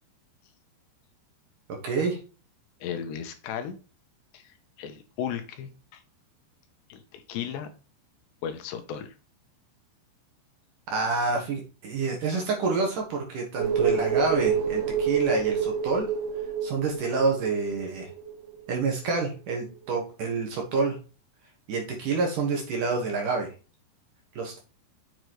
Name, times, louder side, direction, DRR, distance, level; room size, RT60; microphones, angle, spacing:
voice 1, 1.7-2.2 10.9-16.1 16.6-18.1 18.7-21.0 21.7-23.5 24.4-24.6, right 4 dB, 55° right, 2 dB, 2.7 m, -28 dB
voice 2, 2.8-3.8 4.3-6.0 6.9-7.7 8.4-9.1, left 8 dB, 75° left, 8 dB, 3.0 m, -35 dB
sound 1, 13.6-18.8 19.1-19.2, right 7 dB, 75° right, 2.7 m, -28 dB
7.7 x 6.8 x 3.1 m, 0.34 s
omnidirectional pair, 5.3 m